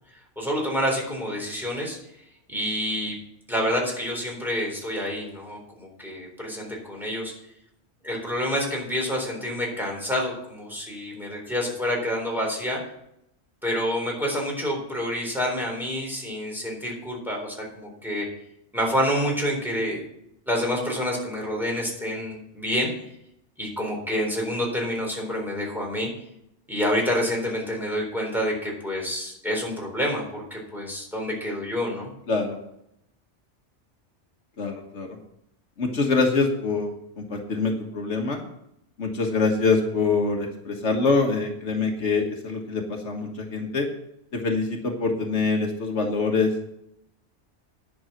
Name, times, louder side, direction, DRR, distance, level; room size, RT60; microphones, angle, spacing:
voice 1, 0.4-2.0 2.5-3.2 3.5-7.3 8.0-12.8 13.6-18.3 18.7-20.0 20.5-22.9 23.6-26.1 26.7-32.1, equal, ahead, -2 dB, 3.9 m, -28 dB
voice 2, 32.3-32.6 34.6-35.2 35.8-38.4 39.0-43.9 44.3-46.6, left 4 dB, 70° left, 2 dB, 1.7 m, -25 dB
10.5 x 6.3 x 7.8 m, 0.78 s
omnidirectional pair, 1.2 m